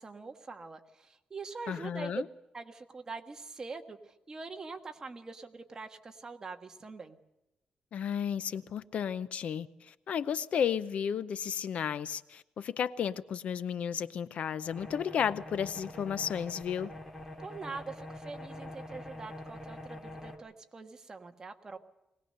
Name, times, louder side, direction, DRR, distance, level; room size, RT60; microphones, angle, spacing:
voice 1, 0.0-2.3 2.5-7.2 17.4-21.8, right 4 dB, 25° right, 1.5 m, -44 dB
voice 2, 1.7-2.2 7.9-16.9, left 8 dB, 65° left, 0.7 m, -33 dB
sound 1, 14.7-20.4, left 1 dB, 10° left, 2.3 m, -45 dB
22.0 x 18.5 x 6.6 m
wide cardioid pair, 155°, 2 cm